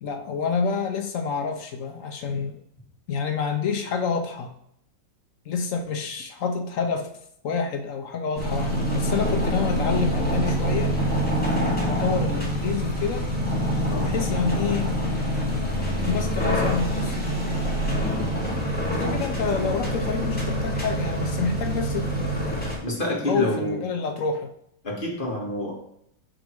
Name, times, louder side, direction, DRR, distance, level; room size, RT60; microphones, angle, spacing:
voice 1, 0.0-2.6 3.1-4.5 5.5-7.1 7.4-11.0 11.9-13.3 14.0-15.0 16.0-17.5 18.9-22.7 23.3-24.5, left 5 dB, 65° left, 6 dB, 0.8 m, -28 dB
sound 1, 8.3-22.8, equal, 5° left, 1.8 m, -25 dB
voice 2, 22.8-23.8 24.8-25.7, equal, 30° left, -2 dB, 1.7 m, -27 dB
5.2 x 5.1 x 4.5 m, 0.73 s
omnidirectional pair, 2.0 m